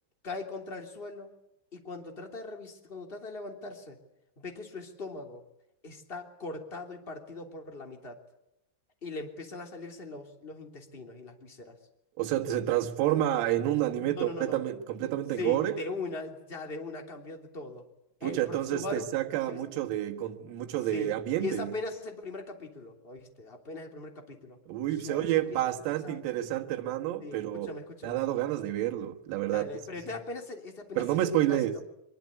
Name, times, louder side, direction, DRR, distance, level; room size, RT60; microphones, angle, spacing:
voice 1, 0.2-1.3 1.7-4.0 4.4-5.4 5.8-8.2 9.0-11.8 13.9-14.6 15.4-17.8 18.2-19.1 19.5-19.6 20.9-24.6 24.9-25.6 26.0-26.2 27.2-28.2 29.5-31.8, left 3 dB, 15° left, 2.2 m, -40 dB
voice 2, 12.2-15.8 18.2-21.7 24.7-27.8 28.0-29.7 31.0-31.8, right 13 dB, 90° right, 4.2 m, -29 dB
24.5 x 22.5 x 8.4 m
omnidirectional pair, 6.0 m